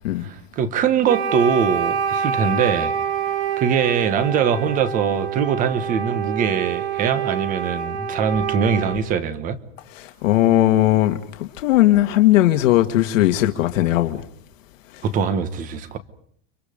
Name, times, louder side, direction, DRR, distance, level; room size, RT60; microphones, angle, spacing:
voice 1, 0.2-2.9 3.6-9.6 15.0-16.0, right 7 dB, 20° right, 1.2 m, -22 dB
Wind instrument woodwind instrument, 1.0-9.1, right 7 dB, 50° right, 3.4 m, -26 dB
voice 2, 9.9-14.2 14.9-15.0, left 14 dB, 75° left, 1.9 m, -18 dB
30.0 x 25.0 x 5.2 m
supercardioid pair, 180°, 39 cm